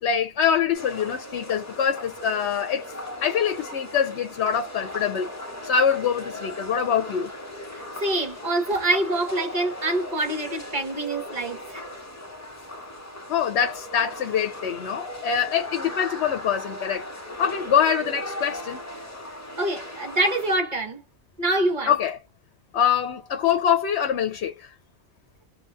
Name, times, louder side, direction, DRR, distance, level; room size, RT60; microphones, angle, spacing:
voice 1, 0.0-2.9 3.2-5.3 5.6-7.3 13.3-17.1 17.4-18.8 21.9-22.2 22.7-24.7, left 8 dB, 80° left, 0.9 m, -24 dB
sound 1, 0.7-20.6, left 1 dB, 15° left, 0.8 m, -38 dB
voice 2, 8.0-11.8 19.6-21.0 21.4-21.9, right 1 dB, 45° right, 1.2 m, -25 dB
2.6 x 2.3 x 2.5 m
omnidirectional pair, 1.1 m